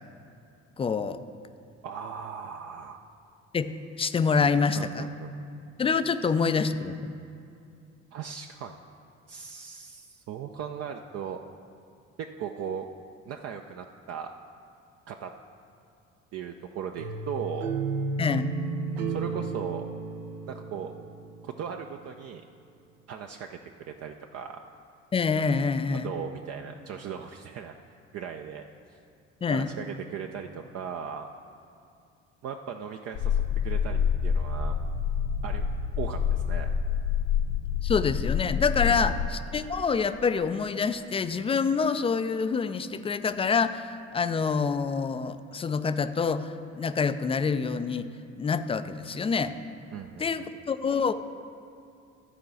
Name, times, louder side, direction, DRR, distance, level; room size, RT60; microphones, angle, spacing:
voice 1, 0.8-1.2 3.5-3.7 4.0-5.1 5.8-7.1 18.2-18.4 25.1-26.1 29.4-29.7 37.8-48.1 48.4-49.6 50.2-51.1, left 5 dB, 15° left, 11 dB, 0.4 m, -26 dB
voice 2, 1.8-3.0 4.8-5.3 8.1-8.7 9.3-11.4 12.4-12.9 13.3-14.3 15.1-15.3 16.3-17.7 19.1-19.8 20.5-20.9 21.4-22.4 23.1-24.6 25.9-27.7 28.1-28.6 29.5-31.3 32.4-34.7 35.4-35.6 36.0-36.7 38.9-39.2 49.9-50.5, right 7 dB, 40° right, 4 dB, 0.5 m, -38 dB
sound 1, 17.0-21.9, right 4 dB, 75° right, 0.8 m, -33 dB
sound 2, 33.1-39.3, left 7 dB, 55° left, 0.9 m, -27 dB
13.0 x 4.7 x 6.3 m, 2.6 s
figure-of-eight pair, 55°, 37 cm